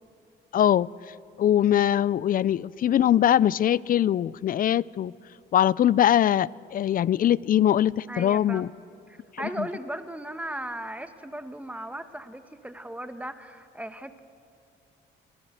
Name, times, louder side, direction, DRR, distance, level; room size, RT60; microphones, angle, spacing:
voice 1, 0.5-0.9 1.4-5.1 5.5-8.7, left 11 dB, 45° left, 22 dB, 0.4 m, -22 dB
voice 2, 8.1-8.6 9.1-14.2, right 1 dB, 5° right, 9 dB, 1.1 m, -37 dB
30.0 x 11.5 x 7.8 m, 2.5 s
cardioid pair, 90°, 20 cm